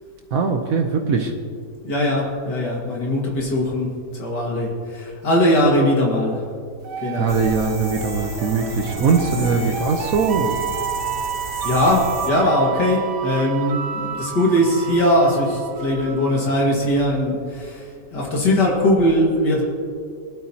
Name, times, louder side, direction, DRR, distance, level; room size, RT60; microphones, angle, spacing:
voice 1, 0.3-1.3 7.2-10.6, right 5 dB, 60° right, 4 dB, 1.1 m, -21 dB
voice 2, 1.8-6.4 7.0-7.4 9.3-9.7 11.4-19.6, left 1 dB, 80° left, -2 dB, 2.5 m, -20 dB
sound 1, 6.8-16.5, right 8 dB, 80° right, 1.5 m, -30 dB
sound 2, 7.3-12.3, right 1 dB, 15° right, 3.7 m, -34 dB
20.5 x 11.5 x 2.9 m, 2.2 s
omnidirectional pair, 1.8 m